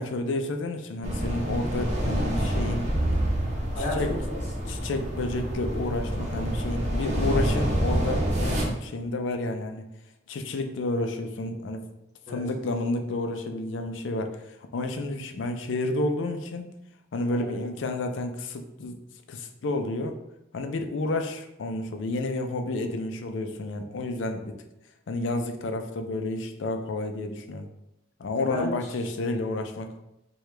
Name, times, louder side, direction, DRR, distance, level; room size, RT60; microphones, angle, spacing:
voice 1, 0.0-3.2 4.0-4.2 4.7-9.8 10.3-11.8 12.3-14.3 14.7-16.7 17.1-19.0 19.3-20.2 20.5-24.6 25.1-27.7 28.2-29.9, left 2 dB, 80° left, 6 dB, 0.4 m, -30 dB
sound 1, 1.0-8.6, right 1 dB, 40° right, 0.8 m, -27 dB
voice 2, 3.4-4.7 12.3-12.4 17.3-17.6 28.4-28.7, left 1 dB, 40° left, -5 dB, 1.4 m, -34 dB
4.7 x 2.3 x 3.2 m, 0.88 s
head